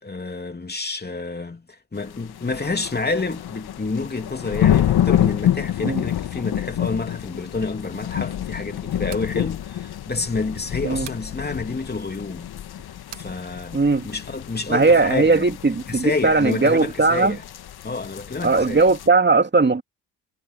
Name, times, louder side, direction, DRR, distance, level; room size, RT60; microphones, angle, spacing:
voice 1, 0.0-12.5 13.1-13.8 14.0-15.5 15.9-17.4 17.8-18.8, left 3 dB, 20° left, 3.2 m, -29 dB
sound 1, 2.0-19.1, left 11 dB, 60° left, 1.9 m, -27 dB
sound 2, 9.1-9.3 11.0-11.3 13.1-13.3, right 14 dB, 70° right, 2.4 m, -40 dB
voice 2, 13.7-14.1 14.7-17.4 18.4-19.8, right 3 dB, 25° right, 2.7 m, -18 dB
supercardioid pair, 60°, 43 cm